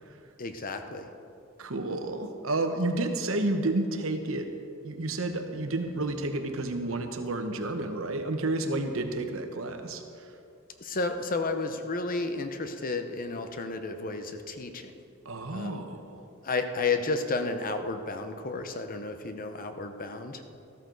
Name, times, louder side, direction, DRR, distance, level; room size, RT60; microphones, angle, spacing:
voice 1, 0.4-1.0 10.8-14.9 15.5-15.8 16.4-20.4, left 3 dB, 40° left, 7 dB, 0.8 m, -32 dB
voice 2, 1.6-4.5 4.8-10.3 15.2-16.2, right 2 dB, 70° right, 6 dB, 1.1 m, -31 dB
13.5 x 13.0 x 3.9 m, 2.6 s
head